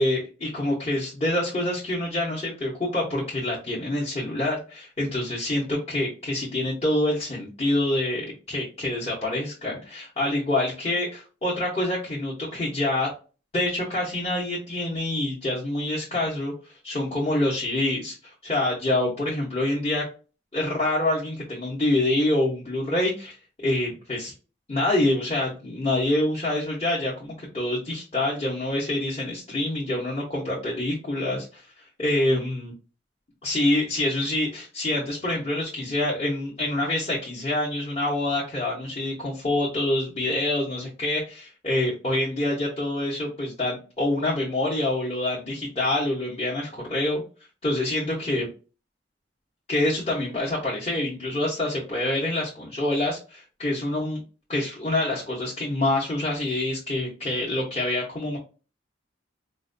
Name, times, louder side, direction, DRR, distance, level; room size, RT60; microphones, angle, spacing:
voice 1, 0.0-13.1 13.5-20.0 20.5-24.3 24.7-32.7 33.4-47.2 47.6-48.5 49.7-54.2 54.5-58.4, left 1 dB, 35° left, -5 dB, 0.9 m, -26 dB
4.4 x 2.2 x 2.6 m, 0.35 s
head